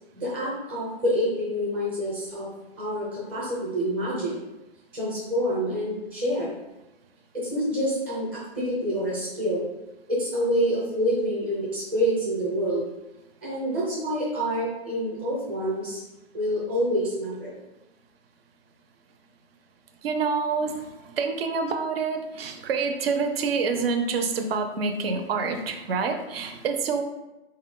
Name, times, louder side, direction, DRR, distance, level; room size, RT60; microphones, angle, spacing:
voice 1, 0.1-2.5 2.8-4.3 4.9-6.5 7.3-9.6 10.1-12.8 13.4-16.0 16.3-17.5, equal, 5° right, -8 dB, 0.5 m, -27 dB
voice 2, 20.0-27.0, right 5 dB, 65° right, 6 dB, 0.6 m, -27 dB
4.4 x 2.2 x 3.6 m, 1.0 s
hypercardioid pair, 165°, 32 cm